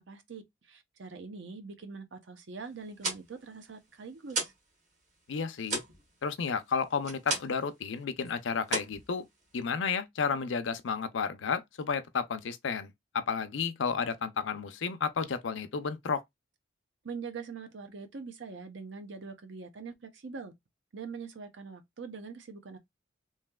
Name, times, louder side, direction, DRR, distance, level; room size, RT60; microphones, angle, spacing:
voice 1, 0.0-4.5 17.0-20.5 20.9-22.8, right 5 dB, 75° right, 0.7 m, -43 dB
sound 1, 2.8-4.7 5.0-7.7 8.0-8.3 8.6-9.7, right 3 dB, 40° right, 1.2 m, -36 dB
voice 2, 5.3-5.8 6.2-9.2 9.5-16.2, left 5 dB, 85° left, 0.5 m, -32 dB
3.2 x 2.7 x 2.2 m
head